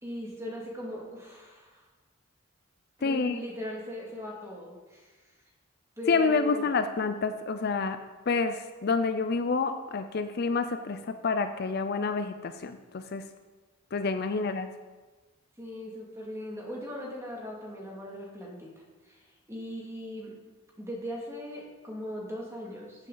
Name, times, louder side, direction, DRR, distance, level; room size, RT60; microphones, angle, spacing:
voice 1, 0.0-1.9 3.0-5.1 6.0-6.7 14.3-14.5 15.6-20.3 20.8-23.1, left 1 dB, 15° right, -3 dB, 2.2 m, -39 dB
voice 2, 3.0-3.4 6.1-8.0 8.3-13.2 13.9-14.7, left 4 dB, 45° left, 9 dB, 0.5 m, -28 dB
15.0 x 7.6 x 3.9 m, 1.3 s
head